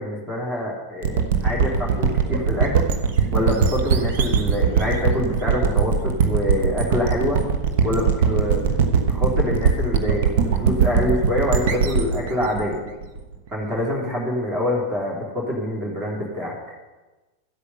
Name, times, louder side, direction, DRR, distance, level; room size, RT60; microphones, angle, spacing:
voice 1, 0.0-2.8 3.3-7.4 7.8-8.7 9.1-12.8 13.5-16.5, left 1 dB, 25° right, -3 dB, 3.3 m, -25 dB
sound 1, 1.0-13.6, right 6 dB, 55° right, 1.1 m, -21 dB
13.5 x 8.3 x 5.5 m, 1.2 s
figure-of-eight pair, 90°, 0 cm